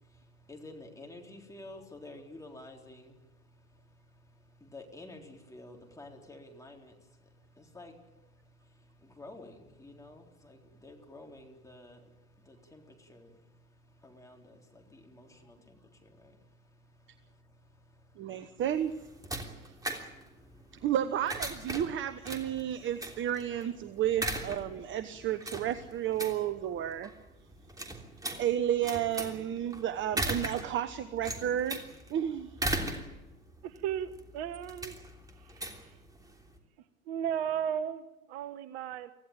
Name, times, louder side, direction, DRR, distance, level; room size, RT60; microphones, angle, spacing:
voice 1, 0.0-18.6 19.0-20.9 21.8-23.3 23.8-24.2 24.7-25.6 26.2-26.9, left 2 dB, 5° left, 3.9 m, -53 dB
voice 2, 18.2-18.9 19.6-19.7 20.8-27.1 28.4-31.8 32.1-32.5, right 10 dB, 25° right, 1.0 m, -32 dB
sound 1, 18.6-36.6, right 1 dB, 10° right, 3.2 m, -39 dB
voice 3, 33.6-35.0 35.4-36.0 37.1-39.1, right 9 dB, 45° right, 1.2 m, -35 dB
25.5 x 16.5 x 9.1 m
figure-of-eight pair, 100°, 43 cm